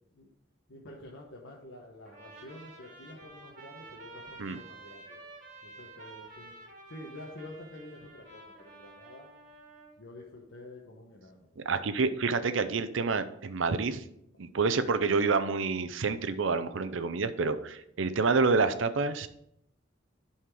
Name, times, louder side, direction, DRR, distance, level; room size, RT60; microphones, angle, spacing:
voice 1, 0.7-5.2 5.6-6.5 6.9-9.3 10.0-11.5 11.7-11.9, left 1 dB, 75° left, -2 dB, 1.2 m, -48 dB
Trumpet, 2.1-10.0, right 2 dB, 40° right, 1.7 m, -50 dB
voice 2, 11.6-14.0 14.4-19.3, right 4 dB, 80° right, 11 dB, 0.6 m, -28 dB
11.0 x 4.3 x 4.8 m, 0.77 s
head